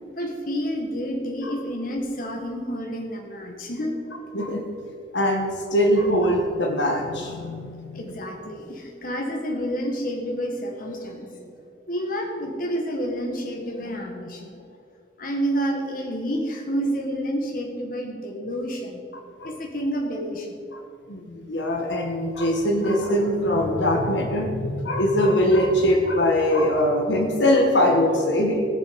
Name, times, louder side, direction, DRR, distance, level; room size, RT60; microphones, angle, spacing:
voice 1, 0.2-4.0 7.9-11.5 11.9-14.6 15.2-19.1 19.4-20.6, equal, 50° left, 2 dB, 1.6 m, -29 dB
voice 2, 5.1-8.0 19.4-19.5 20.7-28.6, left 1 dB, 85° left, 3 dB, 1.5 m, -22 dB
18.5 x 6.9 x 5.3 m, 2.3 s
head